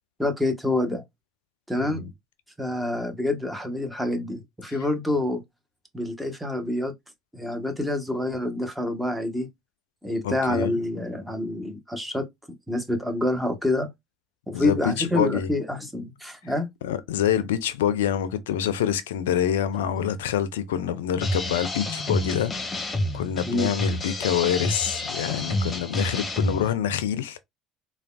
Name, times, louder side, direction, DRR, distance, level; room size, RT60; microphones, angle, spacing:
voice 1, 0.2-1.0 1.7-2.0 2.6-5.4 5.9-6.9 7.3-9.5 10.0-12.3 12.7-13.9 14.5-16.7 23.5-23.7, left 1 dB, 5° right, 0.9 m, -27 dB
voice 2, 1.8-2.1 10.2-10.8 14.5-15.5 16.8-27.4, left 9 dB, 85° left, 0.4 m, -26 dB
sound 1, 21.2-26.7, left 1 dB, 30° left, 0.9 m, -29 dB
3.3 x 2.2 x 2.2 m
hypercardioid pair, 65°, 0 cm